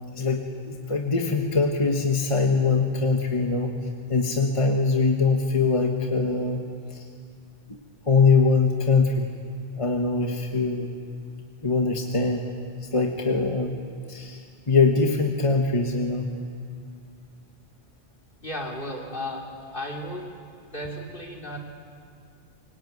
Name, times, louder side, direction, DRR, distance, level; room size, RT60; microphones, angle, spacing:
voice 1, 0.2-3.7 4.1-6.6 6.9-7.0 7.7-9.3 9.8-10.9 11.6-12.5 12.9-13.8 14.1-14.4 14.7-16.3, left 4 dB, 30° left, 2 dB, 1.5 m, -23 dB
voice 2, 18.4-20.4 20.7-21.6, left 1 dB, 55° left, 0 dB, 3.6 m, -34 dB
24.5 x 23.0 x 9.3 m, 2.4 s
omnidirectional pair, 1.0 m